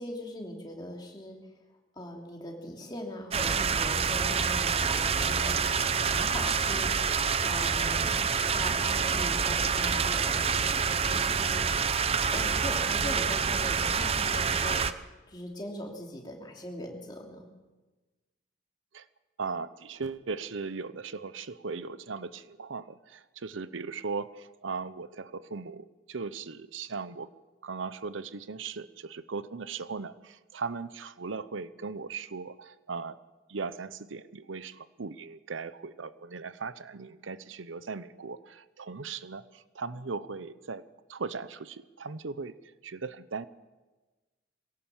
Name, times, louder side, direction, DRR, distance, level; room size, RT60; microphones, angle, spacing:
voice 1, 0.0-1.4 2.0-7.1 7.4-10.6 10.9-11.6 12.3-15.0 15.3-17.5, equal, 20° left, 1 dB, 2.9 m, -40 dB
sound 1, 3.3-14.9, right 6 dB, 30° right, 0.6 m, -27 dB
voice 2, 19.4-27.3 27.6-33.2 33.5-40.8 41.1-42.6 42.8-43.5, right 4 dB, 85° right, 15 dB, 0.8 m, -38 dB
22.0 x 17.0 x 7.2 m, 1.2 s
head